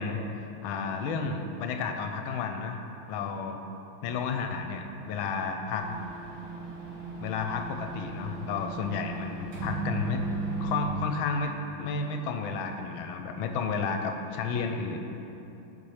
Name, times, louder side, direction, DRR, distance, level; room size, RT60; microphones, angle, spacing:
voice 1, 0.0-2.8 3.1-3.6 4.0-5.9 7.2-10.2 10.6-11.5 11.8-15.0, left 5 dB, 85° left, 5 dB, 1.4 m, -32 dB
sound 1, 5.7-10.9, right 4 dB, 60° right, 2.2 m, -36 dB
6.9 x 4.7 x 4.8 m, 3.0 s
omnidirectional pair, 2.2 m